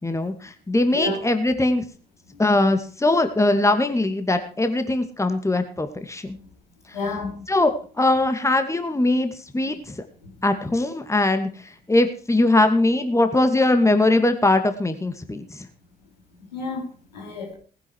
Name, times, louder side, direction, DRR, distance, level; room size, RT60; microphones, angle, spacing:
voice 1, 0.0-1.8 2.4-6.4 6.9-7.0 7.5-10.0 10.4-15.7, left 2 dB, 15° left, 2.3 m, -21 dB
voice 2, 6.9-7.4 10.2-10.3 16.4-17.5, left 2 dB, 85° left, 4.1 m, -30 dB
19.5 x 10.0 x 4.7 m
figure-of-eight pair, 45°, 21 cm